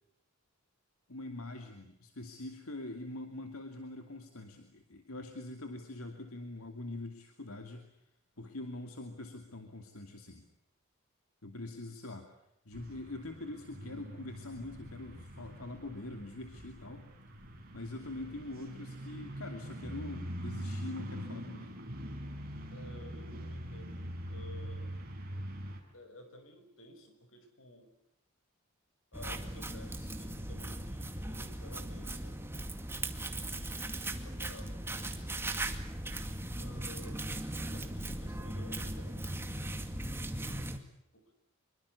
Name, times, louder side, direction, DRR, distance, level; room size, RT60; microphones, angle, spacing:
voice 1, 1.1-7.9 8.4-10.5 11.4-12.3 12.6-17.1 17.7-21.8, left 2 dB, 85° left, 6 dB, 2.7 m, -44 dB
sound 1, 12.7-25.8, equal, 45° right, 5.8 m, -43 dB
voice 2, 22.7-25.0 25.3-25.5 25.9-27.9 29.1-32.4 33.3-35.4 36.6-39.3 41.1-41.3, left 1 dB, 65° left, 7 dB, 6.1 m, -54 dB
sound 2, 29.1-40.8, right 1 dB, 10° right, 2.1 m, -38 dB
26.0 x 23.5 x 8.3 m, 0.78 s
head